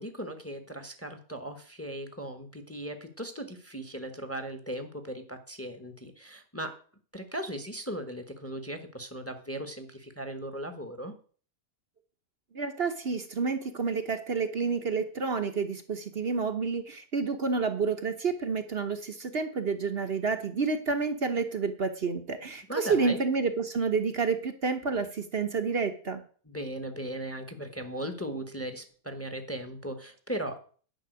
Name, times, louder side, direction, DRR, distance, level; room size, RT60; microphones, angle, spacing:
voice 1, 0.0-6.7 7.1-11.1 22.7-23.2 26.4-30.6, right 1 dB, 10° left, 7 dB, 1.1 m, -38 dB
voice 2, 12.5-26.2, right 4 dB, 45° right, 8 dB, 1.0 m, -29 dB
10.5 x 5.8 x 7.9 m, 0.43 s
omnidirectional pair, 1.7 m